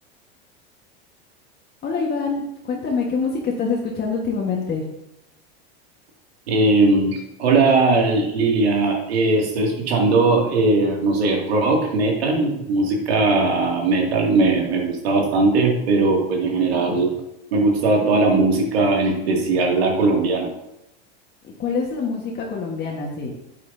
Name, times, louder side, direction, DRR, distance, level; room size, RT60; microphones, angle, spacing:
voice 1, 1.8-4.9 21.4-23.4, left 4 dB, 30° left, -2 dB, 1.5 m, -25 dB
voice 2, 6.5-17.1 17.5-20.5, right 3 dB, 85° right, 0 dB, 2.5 m, -19 dB
9.3 x 8.3 x 2.8 m, 0.86 s
supercardioid pair, 120°, 30 cm